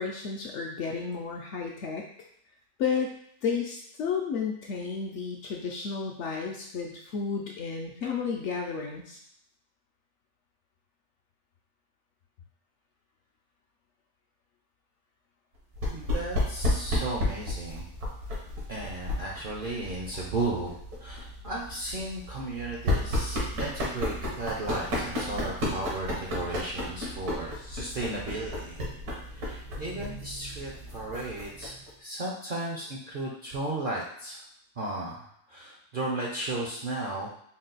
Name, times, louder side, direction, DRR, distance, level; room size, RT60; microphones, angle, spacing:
voice 1, 0.0-2.1 2.8-3.1 3.4-9.2, left 5 dB, 65° left, 0 dB, 0.7 m, -32 dB
sound 1, 15.7-31.9, left 1 dB, 85° right, 1.6 m, -33 dB
voice 2, 15.9-17.9 18.7-28.8 29.3-34.4 34.8-37.3, right 2 dB, 55° right, -3 dB, 0.6 m, -35 dB
3.9 x 2.3 x 3.9 m, 0.70 s
omnidirectional pair, 1.5 m